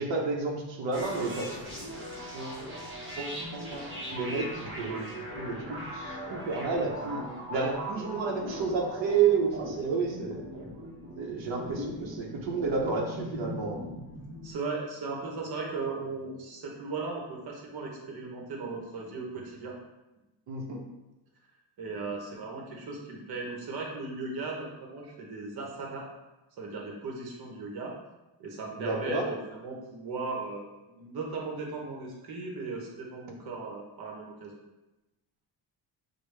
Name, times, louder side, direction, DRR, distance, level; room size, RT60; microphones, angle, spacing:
voice 1, 0.0-1.6 2.3-2.6 3.2-4.5 4.8-5.0 5.3-7.2 7.5-10.4 11.2-13.9 20.5-20.8 28.8-29.2, right 5 dB, 90° right, -1 dB, 0.9 m, -30 dB
sound 1, 0.9-14.5, equal, 25° right, 0.9 m, -40 dB
voice 2, 14.4-19.8 21.8-26.1 26.6-27.9 28.4-34.6, right 3 dB, 55° right, -1 dB, 1.0 m, -37 dB
6.3 x 2.3 x 3.3 m, 1.0 s
cardioid pair, 165°, 44 cm